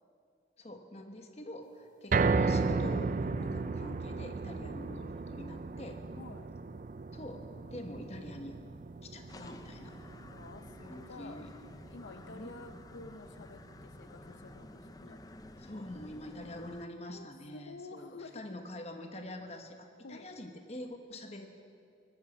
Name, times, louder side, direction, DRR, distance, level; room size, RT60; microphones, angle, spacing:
voice 1, 0.6-6.0 7.1-8.6 9.0-9.9 10.8-11.5 12.3-12.8 15.6-21.5, left 1 dB, 35° left, 5 dB, 1.2 m, -45 dB
sound 1, 2.1-14.4 14.8-14.9 15.3-15.4, right 4 dB, 45° right, 0.4 m, -35 dB
voice 2, 6.2-6.5 10.3-11.4 11.9-15.2 17.1-18.4 20.0-20.3, left 3 dB, 85° left, 9 dB, 0.6 m, -50 dB
sound 2, 9.3-16.9, left 2 dB, 20° left, 0.5 m, -52 dB
18.5 x 14.5 x 5.3 m, 2.3 s
head